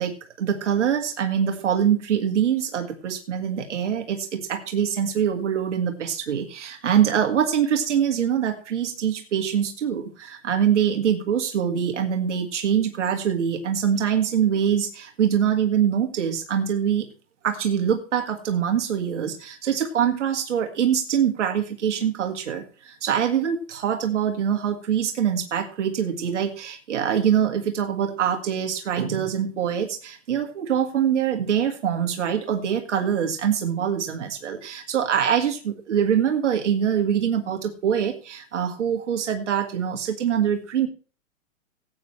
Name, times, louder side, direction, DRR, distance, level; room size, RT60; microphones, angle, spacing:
voice 1, 0.0-17.1 17.4-40.9, right 8 dB, 70° right, 4 dB, 1.9 m, -24 dB
17.5 x 8.9 x 3.2 m, 0.37 s
hypercardioid pair, 130°, 37 cm